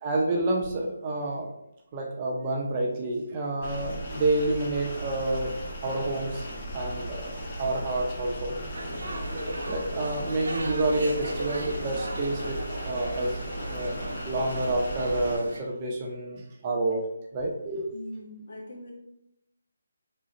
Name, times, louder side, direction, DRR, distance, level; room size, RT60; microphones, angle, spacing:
voice 1, 0.0-1.5 1.9-5.5 5.8-6.5 6.7-8.5 9.7-13.4 13.7-17.0 17.3-17.9, right 2 dB, 30° right, 0 dB, 0.7 m, -29 dB
sound 1, 3.6-15.4, equal, 35° left, 1.6 m, -37 dB
sound 2, 8.7-15.6, right 1 dB, 75° right, 0.9 m, -37 dB
voice 2, 17.9-18.9, equal, 65° left, -2 dB, 1.6 m, -41 dB
3.8 x 3.7 x 3.1 m, 0.83 s
figure-of-eight pair, 155°, 0 cm